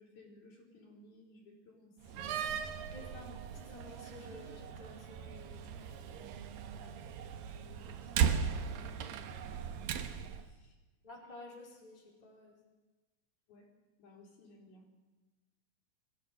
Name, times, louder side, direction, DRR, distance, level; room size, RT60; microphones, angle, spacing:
voice 1, 0.0-2.6 6.7-7.0 7.3-10.1 10.4-10.8 13.5-13.7 14.0-14.8, left 2 dB, 75° left, -1 dB, 6.4 m, -59 dB
Slam, 2.0-10.4, right 7 dB, 70° right, 2.9 m, -37 dB
voice 2, 2.9-6.3 11.0-12.6, left 2 dB, 10° left, -1 dB, 3.8 m, -52 dB
22.5 x 16.0 x 8.2 m, 1.2 s
omnidirectional pair, 4.3 m